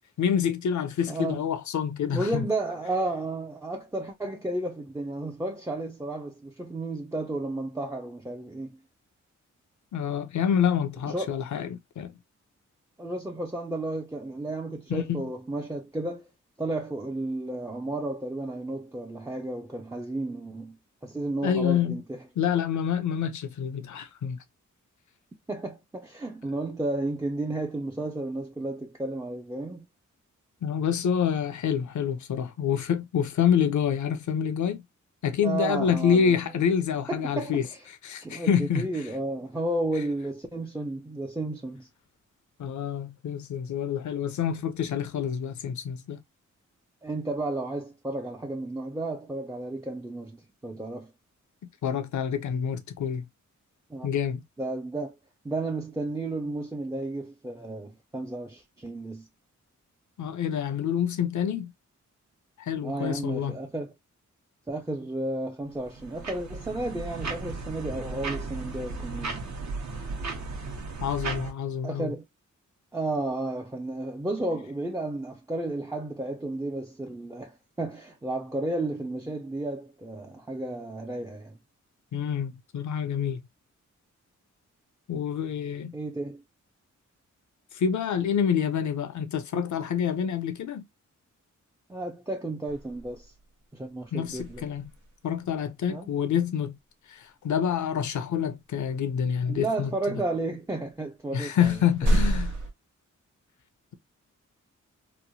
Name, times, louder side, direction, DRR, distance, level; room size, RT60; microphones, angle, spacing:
voice 1, 0.2-2.5 9.9-12.1 14.9-15.3 21.4-22.0 22.4-24.4 30.6-34.8 35.2-37.7 38.0-39.0 42.6-46.2 51.8-53.2 54.0-54.4 60.2-61.7 62.6-63.6 71.0-72.1 82.1-83.4 85.1-85.9 87.7-90.9 94.1-94.9 95.2-96.8 97.1-99.9 101.3-102.5, left 8 dB, 70° left, 0.6 m, -27 dB
voice 2, 1.1-1.4 2.1-8.8 11.1-11.4 13.0-16.2 16.6-22.2 25.5-29.9 35.4-36.3 37.1-37.8 38.2-41.9 47.0-51.1 53.9-54.1 54.6-55.2 55.4-59.3 62.8-63.9 64.7-69.5 71.8-72.2 72.9-81.6 85.9-86.4 91.9-93.3 93.7-94.7 95.9-96.1 99.5-102.2, right 2 dB, 10° right, 0.4 m, -33 dB
sound 1, 65.7-71.5, right 3 dB, 65° right, 0.9 m, -35 dB
sound 2, 92.7-93.4 94.2-95.2 98.7-98.8 100.8-100.9 101.6-102.7, right 1 dB, 90° right, 1.1 m, -28 dB
3.0 x 2.1 x 2.6 m
cardioid pair, 60°, 31 cm